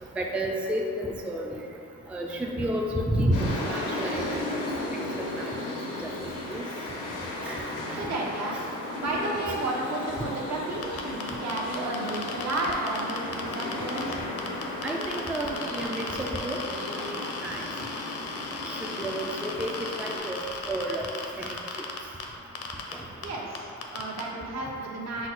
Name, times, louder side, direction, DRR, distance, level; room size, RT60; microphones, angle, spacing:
voice 1, 0.2-1.6 2.1-4.7 5.2-5.5 6.5-6.6 7.5-7.6 7.9-8.0 9.4-9.6 14.8-16.6 17.1-17.6 19.0-19.7 20.0-21.1 21.4-21.6, right 1 dB, 5° right, 0 dB, 0.3 m, -31 dB
sound 1, 3.3-20.2, left 1 dB, 85° left, 0.8 m, -35 dB
voice 2, 7.9-8.6 9.0-14.2 23.2-25.3, right 2 dB, 60° right, -2 dB, 0.8 m, -32 dB
sound 2, 10.8-14.1 14.4-22.2 22.5-22.9 23.2-23.3 23.5-24.2, left 5 dB, 55° left, 0.6 m, -36 dB
5.9 x 2.0 x 4.0 m, 2.5 s
cardioid pair, 90°, 30 cm